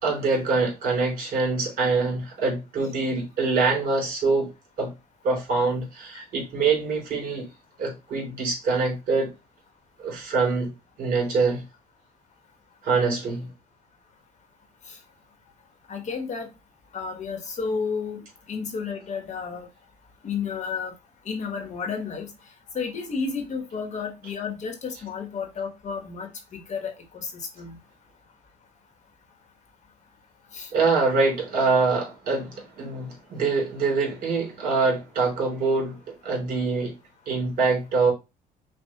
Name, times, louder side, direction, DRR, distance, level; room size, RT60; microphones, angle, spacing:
voice 1, 0.0-4.5 4.8-4.9 5.2-7.5 7.8-9.3 10.0-10.7 11.0-11.6 12.8-13.5 30.7-36.0 36.2-36.9 37.3-38.1, right 4 dB, 60° right, 2.8 m, -24 dB
voice 2, 15.9-16.5 16.9-18.2 18.5-19.7 20.2-20.9 21.2-22.3 22.7-27.8 30.5-30.7, left 5 dB, 45° left, 1.2 m, -32 dB
5.7 x 2.4 x 2.9 m
cardioid pair, 110°, 17 cm